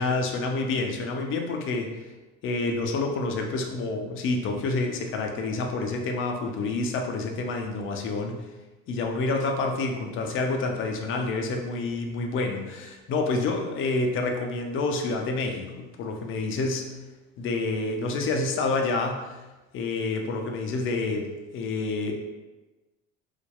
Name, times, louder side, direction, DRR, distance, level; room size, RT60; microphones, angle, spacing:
voice 1, 0.0-1.9 2.4-8.4 8.9-15.6 16.0-16.9 17.4-19.4 19.7-22.1, left 3 dB, 35° left, 3 dB, 0.4 m, -28 dB
2.6 x 2.2 x 2.2 m, 1.1 s
hypercardioid pair, 70°, 38 cm